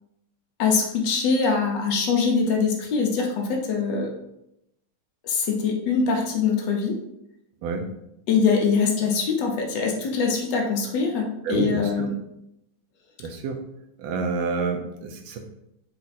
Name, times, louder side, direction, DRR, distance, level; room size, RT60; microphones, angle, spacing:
voice 1, 0.6-4.1 5.2-7.0 8.3-12.1, left 5 dB, 70° left, 1 dB, 1.1 m, -23 dB
voice 2, 11.4-11.9 13.2-13.6 14.0-15.4, right 4 dB, 75° right, 4 dB, 1.2 m, -28 dB
4.2 x 2.3 x 4.0 m, 0.82 s
omnidirectional pair, 2.3 m